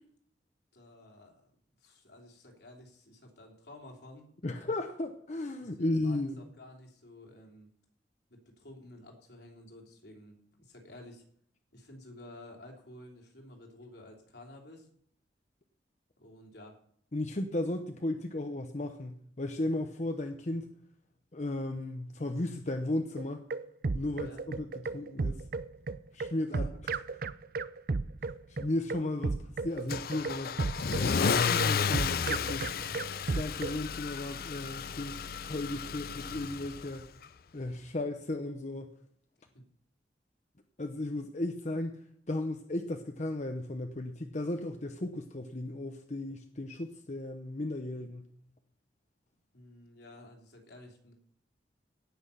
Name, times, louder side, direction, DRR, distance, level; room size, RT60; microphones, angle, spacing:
voice 1, 0.7-1.5 1.8-4.2 5.6-7.7 8.3-11.2 11.7-14.9 16.2-16.8 24.2-24.4 26.5-26.8 39.5-39.6 49.5-51.1, left 1 dB, 75° left, 1 dB, 3.3 m, -52 dB
voice 2, 4.4-6.4 17.1-20.7 21.3-23.4 23.9-25.4 26.1-26.7 28.5-30.6 30.9-32.7 33.2-37.1 37.5-38.9 40.8-42.0 42.3-48.3, left 1 dB, 40° left, 6 dB, 0.9 m, -35 dB
sound 1, 23.2-33.8, right 3 dB, 55° right, 0.5 m, -34 dB
Car / Engine starting / Accelerating revving vroom, 29.9-37.0, left 6 dB, 55° left, 0.5 m, -32 dB
17.5 x 6.2 x 6.9 m, 0.65 s
head